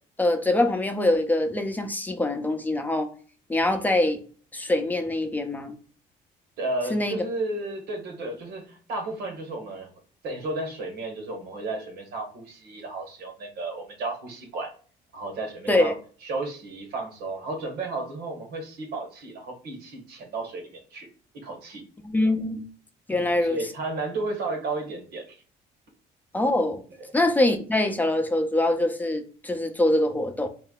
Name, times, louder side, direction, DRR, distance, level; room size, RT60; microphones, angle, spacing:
voice 1, 0.2-3.1 3.5-4.2 4.5-5.8 6.9-7.2 15.7-15.9 22.0-22.6 23.1-23.6 26.3-26.8 27.1-30.5, left 1 dB, 10° left, 0.7 m, -24 dB
voice 2, 6.6-9.9 10.2-14.7 15.1-15.9 16.2-21.1 21.4-21.8 23.1-25.4 27.0-27.1, right 2 dB, 70° right, 1.6 m, -33 dB
4.5 x 2.1 x 4.0 m
cardioid pair, 110°, 17 cm